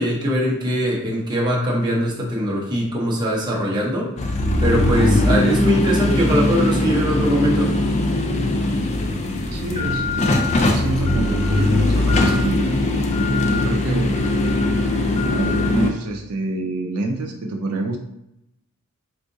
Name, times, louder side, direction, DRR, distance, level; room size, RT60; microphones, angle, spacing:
voice 1, 0.0-4.1 4.6-7.8, equal, 20° right, -4 dB, 0.7 m, -21 dB
sound 1, 4.2-15.9, left 2 dB, 30° left, 0.3 m, -20 dB
voice 2, 9.5-12.6 13.5-14.1 15.3-18.0, right 2 dB, 75° right, 2 dB, 0.4 m, -26 dB
3.6 x 2.4 x 2.6 m, 0.83 s
head